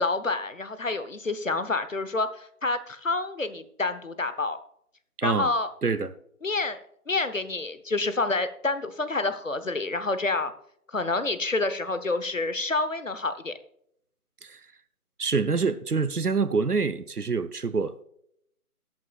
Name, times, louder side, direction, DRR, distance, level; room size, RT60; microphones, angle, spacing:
voice 1, 0.0-4.6 5.2-5.7 6.4-6.8 7.1-10.5 10.9-13.5, left 3 dB, 55° left, 12 dB, 1.0 m, -28 dB
voice 2, 5.2-5.5 5.8-6.1 14.4-14.6 15.2-18.0, right 4 dB, 75° right, 13 dB, 1.0 m, -26 dB
18.0 x 8.7 x 2.4 m, 0.71 s
figure-of-eight pair, 170°, 46 cm